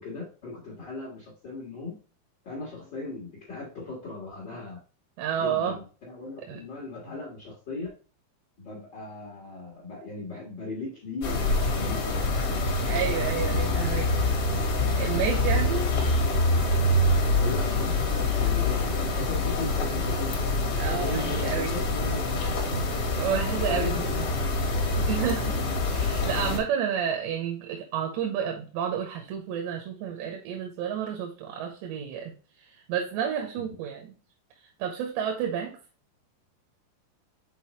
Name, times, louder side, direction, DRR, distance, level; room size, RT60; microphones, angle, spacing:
voice 1, 0.0-1.9 2.4-4.8 5.4-7.9 8.6-12.6 13.5-13.8 17.3-20.3 20.9-24.6 33.5-33.6, left 3 dB, 85° left, -3 dB, 0.9 m, -38 dB
voice 2, 5.2-5.8 6.5-6.6 12.8-14.1 15.0-15.9 20.8-21.7 23.1-24.1 25.0-32.3 32.7-34.1 34.8-35.7, right 8 dB, 85° right, 1 dB, 3.1 m, -30 dB
sound 1, 11.2-26.6, left 2 dB, 70° left, 1.3 m, -26 dB
7.6 x 4.1 x 3.1 m, 0.37 s
omnidirectional pair, 4.9 m